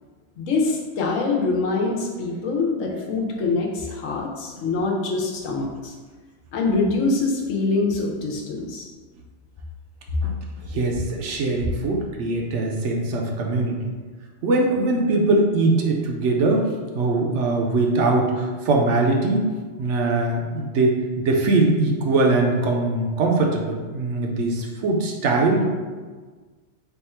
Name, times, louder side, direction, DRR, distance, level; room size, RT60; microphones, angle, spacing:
voice 1, 0.4-5.9 6.5-8.9, left 3 dB, 85° left, -1 dB, 1.1 m, -24 dB
voice 2, 10.6-13.9 14.4-16.7 16.9-19.5 19.8-25.7, right 2 dB, 70° right, 0 dB, 0.9 m, -21 dB
3.5 x 2.4 x 4.2 m, 1.4 s
omnidirectional pair, 1.3 m